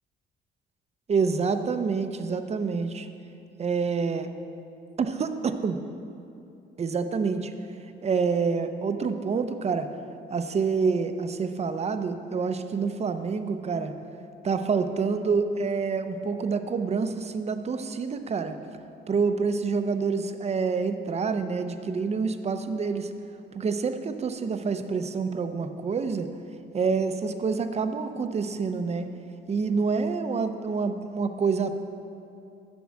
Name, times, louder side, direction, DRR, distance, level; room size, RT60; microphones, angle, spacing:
voice 1, 1.1-3.1 3.6-4.3 5.0-5.8 6.8-7.5 8.0-9.9 10.3-13.9 14.4-18.5 19.1-23.1 23.5-26.3 26.7-29.1 29.5-31.7, right 5 dB, 35° right, 9 dB, 0.6 m, -27 dB
7.0 x 6.1 x 7.5 m, 2.7 s
cardioid pair, 90°, 20 cm